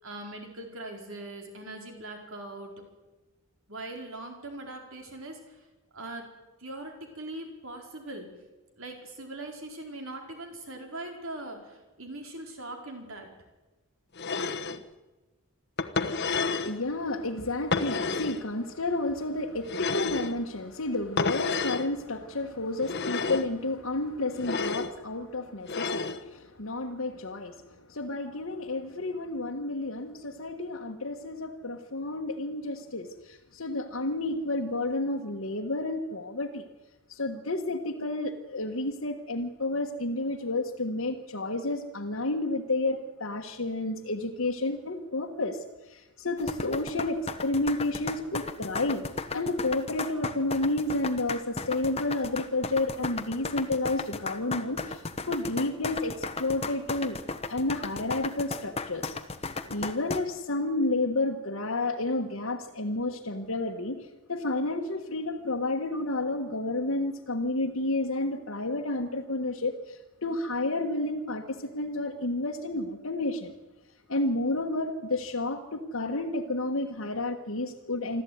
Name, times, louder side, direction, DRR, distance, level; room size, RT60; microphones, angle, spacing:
voice 1, 0.0-2.7 3.7-5.6 5.9-6.3 6.6-8.3 8.8-13.3, right 2 dB, 65° right, 3 dB, 4.6 m, -41 dB
sound 1, 14.2-14.8 15.8-16.8 17.7-18.4 19.7-20.3 21.2-21.9 22.8-23.5 24.4-24.9 25.7-26.2, left 4 dB, 50° left, 1.1 m, -30 dB
voice 2, 16.0-36.6 37.1-49.0 49.3-57.2 57.5-59.2 59.7-73.5 74.1-78.2, left 2 dB, 65° left, -1 dB, 1.4 m, -31 dB
sound 2, 46.4-60.2, left 3 dB, 25° left, 1.1 m, -35 dB
25.5 x 14.0 x 9.5 m, 1.1 s
head